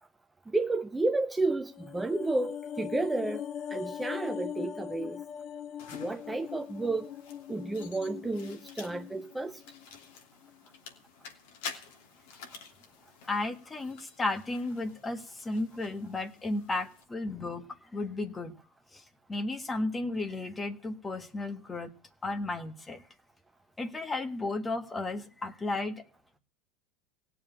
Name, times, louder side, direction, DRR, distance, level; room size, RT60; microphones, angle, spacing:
voice 1, 0.5-3.4 3.7-5.2 5.9-7.1 7.5-9.6, right 2 dB, 10° right, 0.8 m, -31 dB
sound 1, 1.7-10.1 10.4-10.6, left 9 dB, 45° left, 0.8 m, -41 dB
sound 2, 5.8-17.0, left 6 dB, 75° left, 2.9 m, -49 dB
voice 2, 13.3-18.5 18.9-19.0 19.3-21.9 22.2-23.0 23.8-26.0, left 2 dB, 15° left, 1.5 m, -34 dB
17.5 x 7.2 x 8.9 m
supercardioid pair, 120°, 0 cm